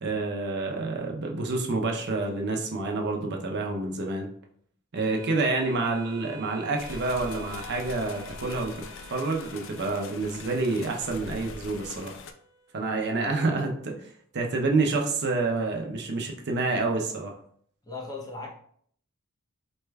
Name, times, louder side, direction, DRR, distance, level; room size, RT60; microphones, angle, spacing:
voice 1, 0.0-4.3 4.9-8.7 9.1-12.2 12.7-17.3, right 3 dB, 50° right, 1 dB, 0.6 m, -28 dB
sound 1, 4.9-13.9, right 3 dB, 90° left, 1.3 m, -50 dB
sound 2, 6.8-12.3, left 4 dB, 60° left, 0.4 m, -42 dB
voice 2, 12.8-13.5 17.8-18.5, left 3 dB, 15° left, -2 dB, 0.7 m, -40 dB
4.3 x 3.3 x 2.2 m, 0.62 s
head